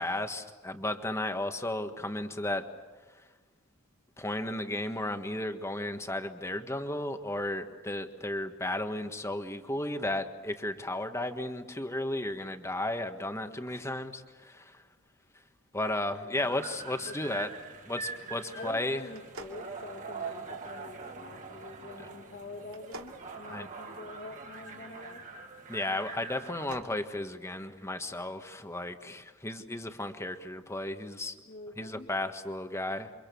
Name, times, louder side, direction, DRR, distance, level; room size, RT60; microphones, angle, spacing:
voice 1, 0.0-2.7 4.2-14.8 15.7-17.5 17.9-19.0 23.5-23.7 25.7-31.3 31.8-33.1, left 1 dB, 15° left, 7 dB, 1.6 m, -34 dB
voice 2, 16.2-16.5 17.1-17.5 18.5-25.2 31.4-32.1, left 2 dB, 45° left, -1 dB, 2.5 m, -46 dB
sound 1, 16.4-26.7, right 4 dB, 35° right, 2.5 m, -43 dB
sound 2, 19.1-20.5 22.7-24.3 26.3-27.0, right 2 dB, 75° right, 2.8 m, -48 dB
29.0 x 26.0 x 7.1 m, 1.3 s
head